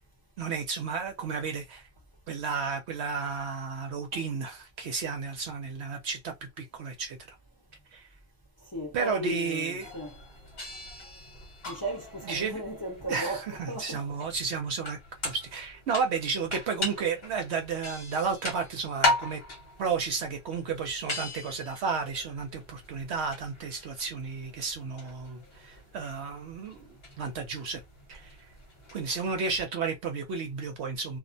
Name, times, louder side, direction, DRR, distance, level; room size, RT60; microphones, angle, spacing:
voice 1, 0.4-1.9 2.3-7.2 7.9-8.1 8.9-9.9 12.2-12.6 13.1-19.4 19.8-27.8 28.1-28.4 28.9-31.2, right 5 dB, 65° right, 0.8 m, -32 dB
voice 2, 8.7-10.2 11.6-14.1, right 1 dB, 20° left, 0.8 m, -36 dB
sound 1, 9.8-29.6, left 2 dB, 55° left, 1.1 m, -38 dB
2.3 x 2.0 x 2.6 m
omnidirectional pair, 1.3 m